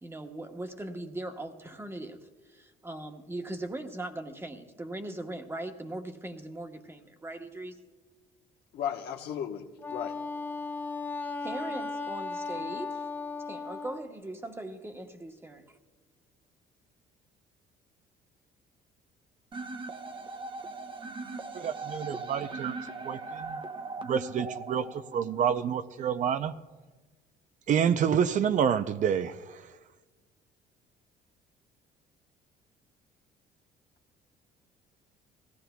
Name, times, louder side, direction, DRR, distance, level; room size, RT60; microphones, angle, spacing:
voice 1, 0.0-7.8 11.4-13.1 13.4-15.6, right 1 dB, 15° right, 5 dB, 1.1 m, -40 dB
voice 2, 8.7-10.1, left 9 dB, 75° left, 3 dB, 1.1 m, -35 dB
Wind instrument woodwind instrument, 9.8-14.0, left 4 dB, 10° left, 0.5 m, -36 dB
sound 1, 19.5-25.5, right 3 dB, 30° right, 0.8 m, -39 dB
voice 3, 21.5-22.8 23.0-23.6 24.1-26.5 27.7-29.7, right 8 dB, 50° right, 11 dB, 0.5 m, -28 dB
20.5 x 15.5 x 2.3 m, 1.3 s
cardioid pair, 110°, 17 cm